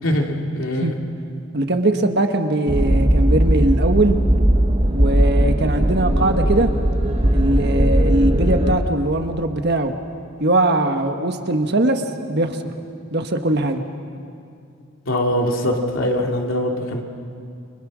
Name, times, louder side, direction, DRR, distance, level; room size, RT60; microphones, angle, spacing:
voice 1, 0.0-1.0 15.1-17.0, left 1 dB, 75° left, 1 dB, 2.9 m, -22 dB
voice 2, 1.5-4.2 4.9-6.7 7.3-9.9 10.4-12.0 12.3-12.7 13.1-13.8, right 2 dB, 55° right, 6 dB, 1.5 m, -20 dB
sound 1, 2.7-8.8, right 1 dB, 30° right, 1.2 m, -18 dB
29.5 x 24.5 x 6.3 m, 2.5 s
head